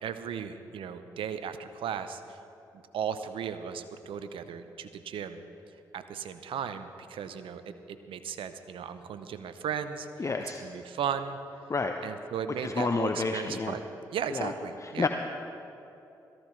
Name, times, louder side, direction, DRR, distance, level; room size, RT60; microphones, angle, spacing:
voice 1, 0.0-2.4 2.9-5.4 5.9-7.6 7.9-10.1 10.6-11.4 12.0-13.8 14.1-15.1, right 8 dB, 70° right, 10 dB, 0.7 m, -36 dB
voice 2, 10.2-10.6 11.7-12.0 12.6-13.8 14.3-14.5 15.0-15.1, left 4 dB, 35° left, 5 dB, 0.7 m, -29 dB
17.5 x 14.0 x 3.3 m, 2.9 s
hypercardioid pair, 45°, 9 cm